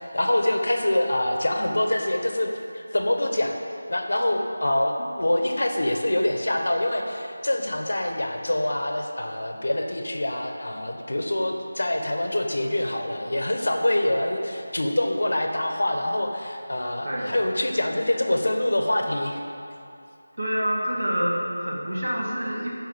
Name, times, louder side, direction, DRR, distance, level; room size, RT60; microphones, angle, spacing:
voice 1, 0.1-3.6 3.9-19.4, left 1 dB, 70° left, 3 dB, 1.5 m, -25 dB
voice 2, 17.0-17.4 20.4-22.7, equal, 50° right, -4 dB, 2.5 m, -27 dB
12.5 x 5.4 x 7.9 m, 2.5 s
figure-of-eight pair, 175°, 0 cm